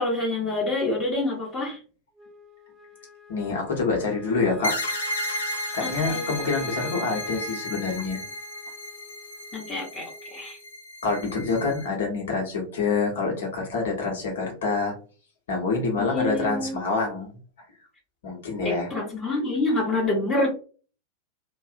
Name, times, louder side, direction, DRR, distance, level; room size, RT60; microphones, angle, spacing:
voice 1, 0.0-1.8 5.8-6.2 9.5-10.6 16.0-16.8 18.6-20.5, left 2 dB, 30° left, -5 dB, 0.8 m, -27 dB
Wind instrument woodwind instrument, 2.2-10.6, equal, 15° right, 0.4 m, -44 dB
voice 2, 3.3-4.7 5.7-8.2 11.0-14.9 15.5-17.3 18.2-18.9, left 4 dB, 60° left, 1 dB, 0.9 m, -26 dB
sound 1, 4.6-11.9, left 1 dB, 80° left, 0.6 m, -34 dB
2.5 x 2.0 x 2.4 m, 0.38 s
figure-of-eight pair, 90°, 0 cm